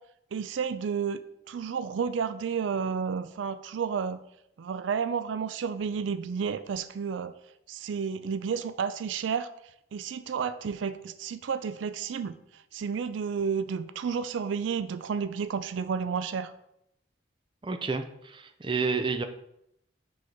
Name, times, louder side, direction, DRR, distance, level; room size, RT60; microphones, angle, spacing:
voice 1, 0.3-1.2 1.5-4.2 4.6-7.3 7.7-9.5 9.9-16.5, right 6 dB, 90° right, 12 dB, 0.4 m, -31 dB
voice 2, 17.6-19.3, right 4 dB, 25° right, 8 dB, 0.4 m, -30 dB
4.9 x 4.0 x 5.8 m, 0.78 s
head